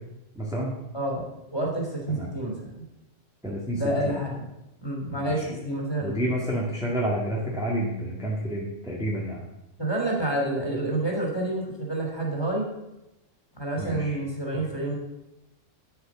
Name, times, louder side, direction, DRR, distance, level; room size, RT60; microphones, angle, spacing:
voice 1, 0.4-0.7 2.1-2.3 3.4-4.1 5.1-5.5 6.0-9.4 13.8-14.2 14.5-14.6, equal, 5° right, -4 dB, 1.9 m, -29 dB
voice 2, 0.9-2.9 3.7-4.3 4.8-6.3 9.8-12.7 13.6-15.0, right 1 dB, 20° left, -1 dB, 3.2 m, -29 dB
10.5 x 8.2 x 6.2 m, 0.94 s
omnidirectional pair, 1.4 m